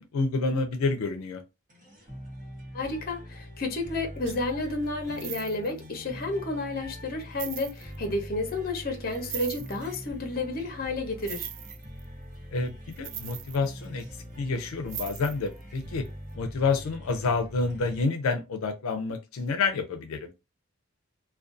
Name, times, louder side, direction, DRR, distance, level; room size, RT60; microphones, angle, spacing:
voice 1, 0.0-1.4 8.1-8.2 12.5-12.7 13.0-14.0 14.4-16.0 16.4-20.3, left 4 dB, 85° left, 0.4 m, -28 dB
sound 1, 1.7-18.0, equal, 40° right, 1.0 m, -43 dB
voice 2, 2.7-11.5, left 2 dB, 45° left, 0.6 m, -31 dB
sound 2, 4.3-4.5 5.0-5.8 6.6-6.7 7.2-8.1 9.1-9.9 11.2-12.1 12.9-14.2 14.9-15.6 16.1-16.2, right 11 dB, 60° right, 0.3 m, -39 dB
2.4 x 2.2 x 2.4 m
head